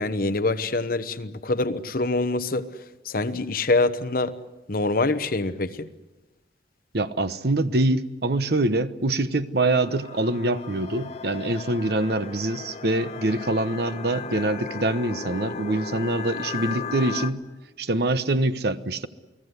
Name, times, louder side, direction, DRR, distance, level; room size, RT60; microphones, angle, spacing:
voice 1, 0.0-2.7 3.0-4.3 4.7-5.9, left 2 dB, 55° left, 11 dB, 1.1 m, -25 dB
voice 2, 6.9-17.4 17.8-19.1, right 2 dB, 60° right, 12 dB, 1.0 m, -24 dB
sound 1, 9.6-17.3, left 5 dB, 35° left, 1.2 m, -36 dB
29.0 x 19.0 x 8.2 m, 1.1 s
head